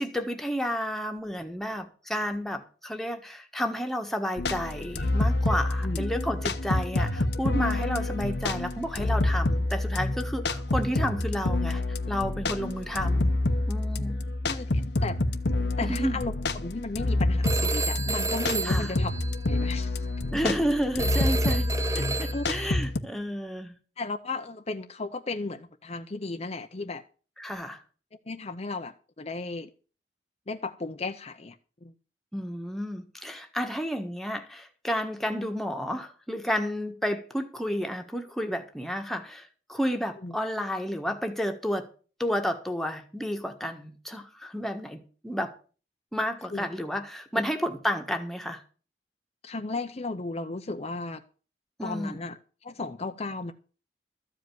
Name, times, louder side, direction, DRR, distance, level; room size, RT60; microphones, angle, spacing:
voice 1, 0.0-11.8 12.1-13.3 13.7-14.2 15.8-16.2 18.6-18.9 20.3-23.8 27.4-27.8 32.3-41.9 42.2-45.5 46.1-48.6 51.8-52.2, equal, ahead, 1.5 m, -31 dB
sound 1, 4.4-23.0, left 2 dB, 70° left, 0.9 m, -28 dB
voice 2, 14.4-15.2 15.8-16.3 16.6-19.1 19.5-20.1 22.3-22.4 24.0-27.0 28.3-29.7 30.5-31.6 31.8-31.9 40.2-40.3 46.5-46.7 47.3-47.4 49.4-51.2 51.8-53.5, left 3 dB, 35° left, 0.7 m, -35 dB
Telephone, 17.4-19.8 21.0-22.7, right 3 dB, 20° right, 0.8 m, -32 dB
14.0 x 5.2 x 9.3 m
head